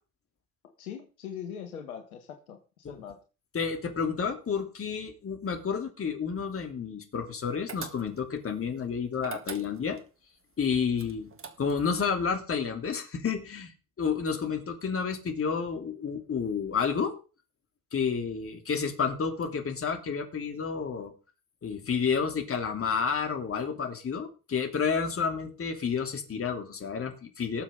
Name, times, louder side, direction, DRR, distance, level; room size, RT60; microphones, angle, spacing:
voice 1, 0.6-3.2, left 8 dB, 70° left, 5 dB, 1.8 m, -42 dB
voice 2, 3.5-10.0 10.6-11.3 11.6-13.7 14.0-17.1 17.9-21.1 21.6-27.6, left 6 dB, 30° left, 4 dB, 3.2 m, -30 dB
sound 1, 7.7-8.4 9.2-10.1 11.0-11.9, right 6 dB, 30° right, 1.8 m, -42 dB
19.5 x 7.2 x 3.9 m, 0.34 s
figure-of-eight pair, 55°, 43 cm